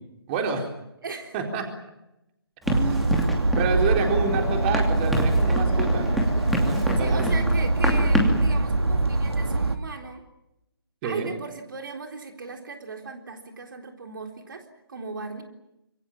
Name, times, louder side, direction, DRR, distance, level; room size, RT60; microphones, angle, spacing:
voice 1, 0.3-0.7 1.3-1.6 2.7-3.1 3.6-6.2 6.5-7.5 11.0-11.3, right 4 dB, 25° right, 3 dB, 4.2 m, -28 dB
voice 2, 1.0-1.4 7.0-10.2 11.0-15.4, right 4 dB, 55° right, 4 dB, 3.9 m, -37 dB
Run, 2.7-8.5, equal, ahead, 2.7 m, -28 dB
sound 1, 2.7-9.8, right 2 dB, 80° right, 2.5 m, -23 dB
Bell, 4.0-9.1, left 12 dB, 15° left, 1.3 m, -41 dB
26.5 x 25.0 x 7.3 m, 0.87 s
figure-of-eight pair, 145°, 13 cm